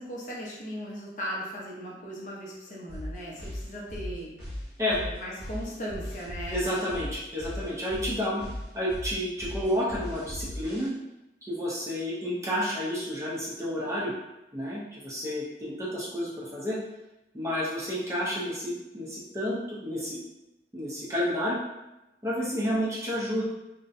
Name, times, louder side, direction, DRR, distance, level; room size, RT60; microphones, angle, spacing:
voice 1, 0.0-4.3 5.0-6.6, equal, 45° left, -4 dB, 0.5 m, -38 dB
sound 1, 2.9-10.9, left 1 dB, 80° right, 1.1 m, -38 dB
voice 2, 6.5-8.4 8.7-10.9 11.4-14.1 14.5-16.8 17.3-20.2 20.7-21.6 22.2-23.4, equal, 15° right, -6 dB, 0.5 m, -30 dB
2.6 x 2.0 x 2.4 m, 0.97 s
head